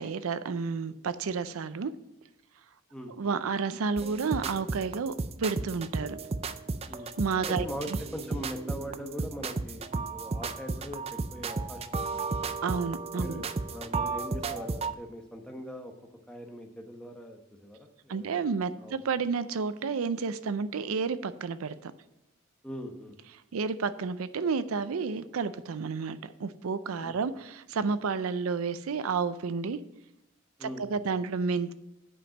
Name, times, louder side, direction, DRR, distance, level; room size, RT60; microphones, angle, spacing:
voice 1, 0.0-1.9 3.2-6.2 7.2-7.7 12.6-13.4 18.1-21.9 23.5-29.8 30.6-31.7, right 5 dB, 90° right, 14 dB, 0.5 m, -31 dB
sound 1, 4.0-14.9, right 4 dB, 30° right, 0.4 m, -33 dB
voice 2, 7.5-12.6 13.2-15.9 16.3-18.3 18.8-18.9 22.6-23.1 27.0-27.2 30.6-31.1, equal, 5° left, 2 dB, 1.0 m, -41 dB
8.6 x 5.2 x 7.2 m, 0.88 s
head